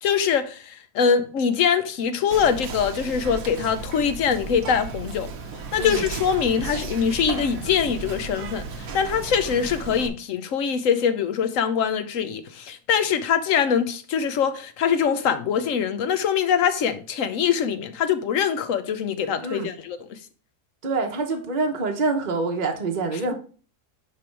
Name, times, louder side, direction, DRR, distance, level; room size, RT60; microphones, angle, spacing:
voice 1, 0.0-5.3 5.7-20.2 23.1-23.2, left 7 dB, 60° left, 1.0 m, -23 dB
Whispering, 2.3-10.1, right 5 dB, 60° right, 1.2 m, -34 dB
voice 2, 20.8-23.3, right 3 dB, 35° right, 1.0 m, -26 dB
10.0 x 3.5 x 4.5 m
omnidirectional pair, 1.7 m